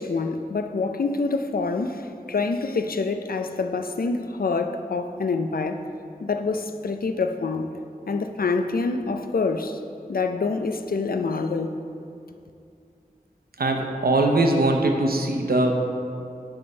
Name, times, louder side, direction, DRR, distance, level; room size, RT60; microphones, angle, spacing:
voice 1, 0.0-5.8 6.2-7.7 8.1-9.8 10.1-11.7, left 4 dB, 75° left, 7 dB, 0.4 m, -26 dB
voice 2, 13.6-15.8, right 2 dB, 85° right, 3 dB, 0.7 m, -21 dB
9.5 x 3.5 x 5.4 m, 2.5 s
wide cardioid pair, 50°, 15 cm